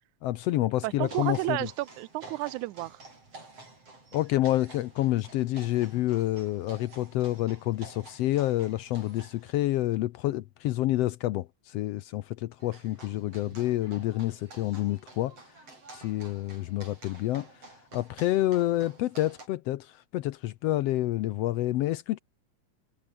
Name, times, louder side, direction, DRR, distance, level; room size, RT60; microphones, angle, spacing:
voice 1, 0.2-1.7 4.1-15.3 15.9-22.2, left 15 dB, 75° left, 1.5 m, -28 dB
voice 2, 0.8-3.0, right 19 dB, 85° right, 2.1 m, -32 dB
sound 1, 1.0-9.5 12.6-19.5, right 3 dB, 55° right, 9.1 m, -50 dB
omnidirectional pair, 3.4 m